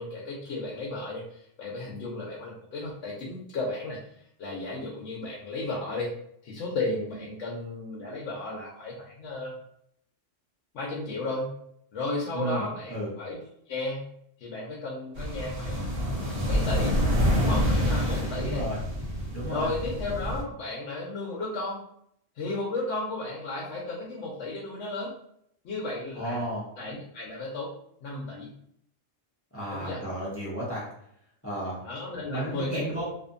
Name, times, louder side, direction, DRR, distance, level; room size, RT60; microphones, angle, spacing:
voice 1, 0.0-4.0 4.4-6.1 6.4-9.6 10.7-11.5 11.9-13.4 13.7-14.0 14.4-15.8 16.5-17.0 17.4-18.7 19.5-21.8 22.3-25.1 25.6-26.5 26.8-27.7 28.0-28.5 29.7-30.0 31.8-33.0, left 2 dB, 75° left, -4 dB, 0.9 m, -34 dB
sound 1, 15.2-20.4, equal, 55° right, 1.0 m, -27 dB
voice 2, 18.3-18.8 19.3-19.7 26.1-26.6 29.5-30.9 31.4-31.8 32.3-33.0, right 1 dB, 15° left, -7 dB, 0.7 m, -33 dB
2.6 x 2.5 x 2.4 m, 0.72 s
omnidirectional pair, 1.3 m